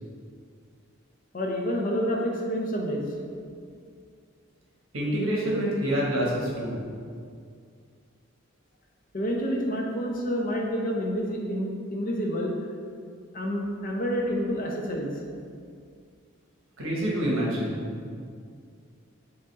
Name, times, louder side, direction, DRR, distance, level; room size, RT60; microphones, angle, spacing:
voice 1, 1.3-3.0 9.1-12.5 13.3-15.1, equal, 40° left, 0 dB, 0.5 m, -28 dB
voice 2, 4.9-6.8 16.8-18.1, right 1 dB, 85° right, -4 dB, 1.1 m, -27 dB
4.9 x 2.5 x 4.0 m, 2.2 s
head